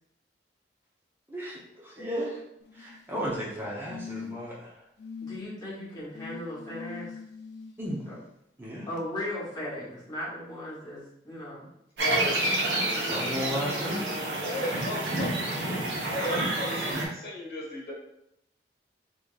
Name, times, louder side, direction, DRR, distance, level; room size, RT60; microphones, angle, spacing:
voice 1, 1.3-2.4 2.7-4.7 7.8-8.1 8.6-8.9 12.9-14.1 14.3-14.4, equal, 10° right, -6 dB, 0.7 m, -34 dB
sound 1, 2.6-3.2 3.9-4.6 5.0-5.4 6.1-7.7 9.0-9.1, left 5 dB, 90° left, 0.6 m, -42 dB
voice 2, 5.2-7.2 8.1-8.2 8.9-11.7 15.6-15.8, left 1 dB, 20° left, -6 dB, 1.0 m, -37 dB
voice 3, 12.0-12.4 14.4-15.3 16.1-17.9, left 1 dB, 60° left, -4 dB, 1.3 m, -34 dB
sound 2, 12.0-17.0, right 2 dB, 90° right, 0.9 m, -29 dB
3.8 x 3.2 x 2.4 m, 0.78 s
head